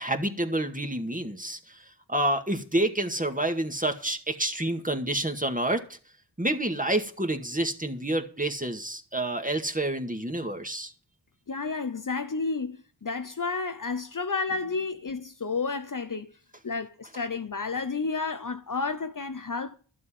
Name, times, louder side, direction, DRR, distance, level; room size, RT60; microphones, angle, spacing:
voice 1, 0.0-1.8 2.1-6.0 6.4-10.9, right 1 dB, 15° right, 2.1 m, -28 dB
voice 2, 11.5-16.3 16.6-19.8, left 4 dB, 40° left, 1.0 m, -31 dB
12.5 x 7.7 x 7.5 m
cardioid pair, 40°, 47 cm